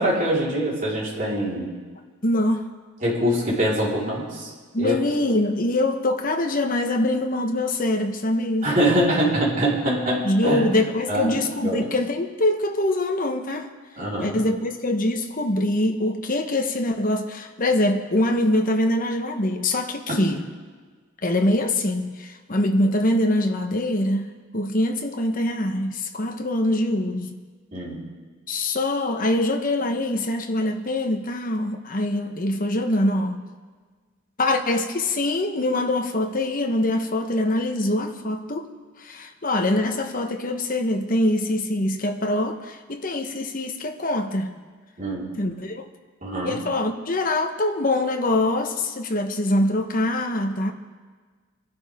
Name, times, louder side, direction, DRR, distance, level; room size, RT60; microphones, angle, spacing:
voice 1, 0.0-1.7 3.0-4.5 4.8-4.9 8.6-10.7 11.1-11.9 14.0-14.4 20.1-20.2 27.7-28.0 45.0-45.3 46.2-46.6, right 1 dB, 40° right, -7 dB, 4.3 m, -24 dB
voice 2, 2.2-2.7 4.7-8.7 10.2-13.7 14.2-20.5 21.2-24.3 24.5-27.4 28.5-33.4 34.4-38.7 39.0-44.6 45.4-45.9 46.4-50.7, left 1 dB, 40° left, 5 dB, 1.1 m, -24 dB
23.0 x 12.0 x 3.6 m, 1.5 s
head